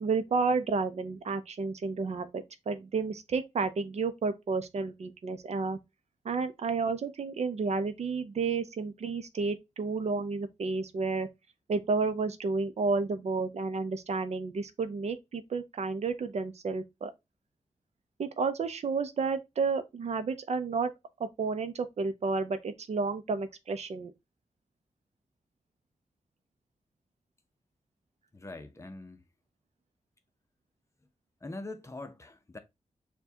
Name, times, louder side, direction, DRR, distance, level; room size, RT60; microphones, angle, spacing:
voice 1, 0.0-5.8 6.2-11.3 11.7-17.1 18.2-20.9 21.2-24.1, right 4 dB, 65° right, 0.5 m, -31 dB
voice 2, 28.3-29.2 31.4-32.6, left 2 dB, 25° left, 0.6 m, -43 dB
6.7 x 2.2 x 2.7 m
wide cardioid pair, 110°, 12 cm